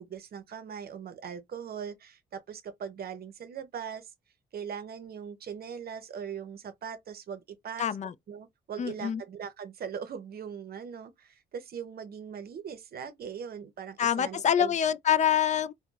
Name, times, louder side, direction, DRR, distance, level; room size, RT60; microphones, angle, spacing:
voice 1, 0.0-4.1 4.5-7.9 8.3-14.7, right 7 dB, 50° right, 0.7 m, -40 dB
voice 2, 7.8-8.1 8.8-9.2 14.0-15.7, left 9 dB, 35° left, 0.4 m, -26 dB
3.7 x 2.2 x 2.3 m
cardioid pair, 90°, 20 cm